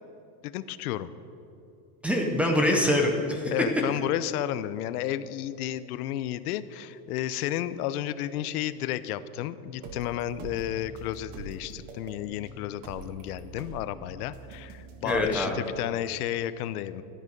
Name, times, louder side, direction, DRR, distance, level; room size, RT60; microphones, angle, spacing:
voice 1, 0.4-1.1 3.5-17.0, left 12 dB, 75° left, 14 dB, 0.8 m, -32 dB
voice 2, 2.0-3.5 15.0-15.6, left 1 dB, 5° right, 1 dB, 0.6 m, -24 dB
sound 1, 9.8-15.8, right 3 dB, 40° right, 1.5 m, -44 dB
17.5 x 12.5 x 5.3 m, 2.8 s
supercardioid pair, 180°, 45 cm